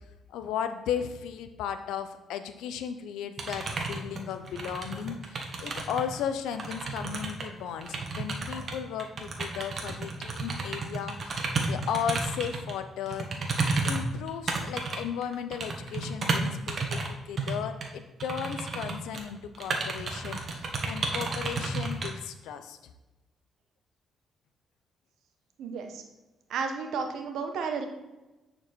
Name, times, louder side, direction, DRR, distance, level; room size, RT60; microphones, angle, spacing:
voice 1, 0.3-11.4 11.7-22.8, left 8 dB, 90° left, 9 dB, 0.6 m, -35 dB
sound 1, 3.4-6.2 6.5-12.7 13.1-17.1 17.4-17.5 17.8-17.9 18.2-19.3 19.5-22.1, right 3 dB, 45° right, 1.4 m, -32 dB
voice 2, 25.6-26.0 26.5-27.9, right 5 dB, 80° right, 5 dB, 1.1 m, -32 dB
9.3 x 4.5 x 4.4 m, 1.1 s
cardioid pair, 90°, 0 cm